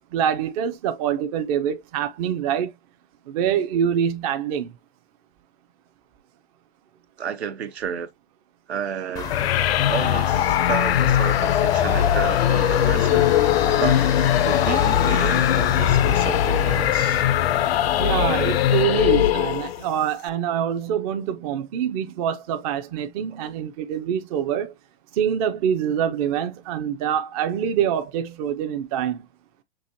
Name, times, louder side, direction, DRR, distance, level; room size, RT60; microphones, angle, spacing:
voice 1, 0.1-2.7 3.3-4.7 18.0-24.7 25.1-29.2, right 9 dB, 35° right, 0.6 m, -25 dB
voice 2, 7.2-8.1 8.7-9.4 9.9-13.3 13.8-14.1 14.4-17.2, right 7 dB, 75° right, 1.0 m, -31 dB
sound 1, 9.2-18.8, left 7 dB, 10° left, 0.5 m, -30 dB
sound 2, 9.3-19.9, left 11 dB, 65° left, 0.5 m, -20 dB
6.1 x 2.5 x 2.6 m
hypercardioid pair, 125°, 33 cm